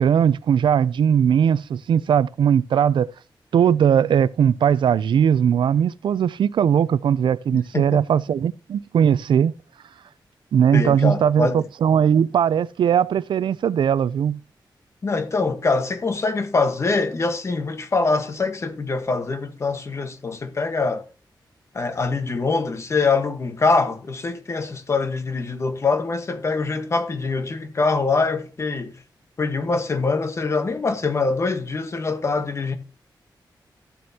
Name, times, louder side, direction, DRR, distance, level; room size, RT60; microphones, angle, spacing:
voice 1, 0.0-3.1 3.5-9.5 10.5-14.4, right 8 dB, 80° right, 0.4 m, -19 dB
voice 2, 7.5-8.0 10.7-11.6 15.0-21.0 21.7-28.9 29.4-32.7, left 3 dB, 35° left, 1.2 m, -24 dB
13.5 x 7.7 x 2.8 m
wide cardioid pair, 175°, 8 cm